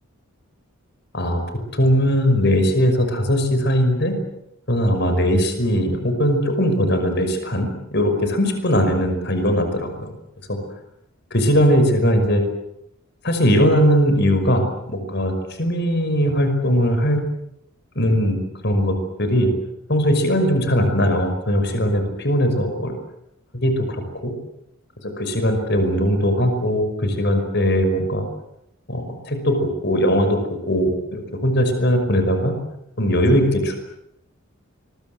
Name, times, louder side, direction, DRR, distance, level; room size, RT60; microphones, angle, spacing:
voice 1, 1.7-4.1 4.7-10.1 10.5-10.6 11.3-12.4 13.2-15.3 15.6-17.2 18.0-18.4 18.6-19.5 19.9-23.0 23.6-23.9 24.2-24.3 25.2-28.3 28.9-30.4 30.7-32.5 33.0-33.8, equal, 50° left, 7 dB, 5.7 m, -19 dB
26.0 x 22.5 x 8.0 m, 0.82 s
head